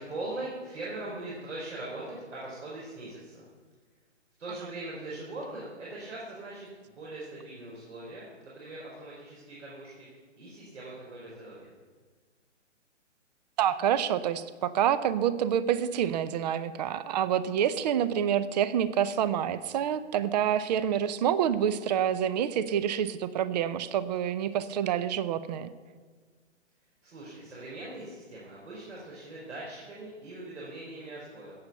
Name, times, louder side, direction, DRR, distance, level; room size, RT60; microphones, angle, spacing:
voice 1, 0.0-3.4 4.4-11.7 27.0-31.5, right 2 dB, 70° right, -5 dB, 4.6 m, -41 dB
voice 2, 13.6-25.7, right 9 dB, 35° right, 15 dB, 0.7 m, -27 dB
14.5 x 8.4 x 6.7 m, 1.5 s
hypercardioid pair, 135°, 37 cm